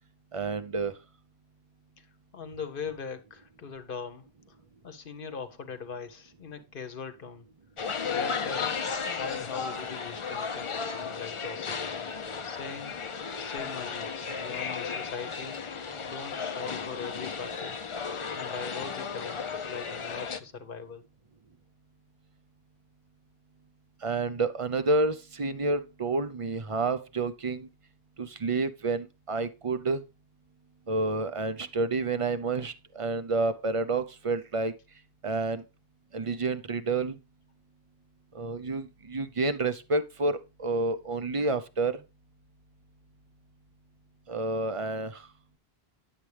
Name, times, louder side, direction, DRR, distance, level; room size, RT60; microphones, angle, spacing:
voice 1, 0.3-0.9 24.0-27.7 28.2-30.0 30.9-34.7 35.2-35.6 36.1-37.2 38.3-42.0 44.3-45.2, right 3 dB, 40° right, 0.6 m, -29 dB
voice 2, 2.3-4.6 4.8-7.4 8.0-8.7 9.1-11.8 12.4-13.0 13.4-15.6 16.0-17.8 18.3-21.0, left 5 dB, 60° left, 1.0 m, -40 dB
sound 1, 7.8-20.4, left 5 dB, 40° left, 0.5 m, -34 dB
9.6 x 7.5 x 3.3 m
omnidirectional pair, 1.0 m